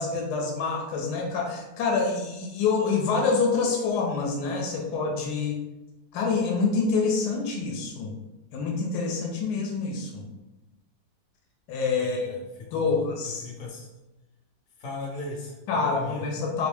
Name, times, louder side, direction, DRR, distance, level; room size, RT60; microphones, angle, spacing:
voice 1, 0.0-5.6 6.1-8.1 8.5-10.3 11.7-12.4 12.7-13.5 15.7-16.7, left 4 dB, 85° left, 0 dB, 1.2 m, -26 dB
voice 2, 12.0-12.4 12.7-13.9 14.8-16.3, left 3 dB, 60° left, -2 dB, 0.9 m, -38 dB
2.8 x 2.6 x 3.3 m, 1.0 s
omnidirectional pair, 1.7 m